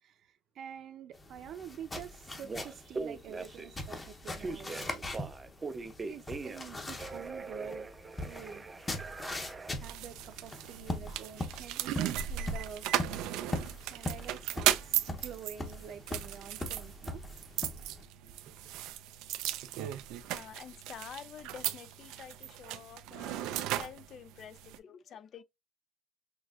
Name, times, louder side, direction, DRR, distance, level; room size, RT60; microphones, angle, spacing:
voice 1, 0.0-5.1 6.1-7.9 8.2-8.6 9.7-12.9 13.8-17.2, right 8 dB, 55° right, 0.7 m, -47 dB
sound 1, 1.1-18.0, left 1 dB, 15° left, 0.8 m, -41 dB
Telephone, 1.9-2.0 2.4-3.8 4.4-6.7 7.0-9.8, right 4 dB, 20° right, 0.4 m, -41 dB
sound 2, 9.8-24.8, right 12 dB, 90° right, 0.5 m, -36 dB
voice 2, 20.3-23.5 23.8-25.4, left 8 dB, 45° left, 0.5 m, -48 dB
6.3 x 2.5 x 2.4 m
cardioid pair, 145°, 0 cm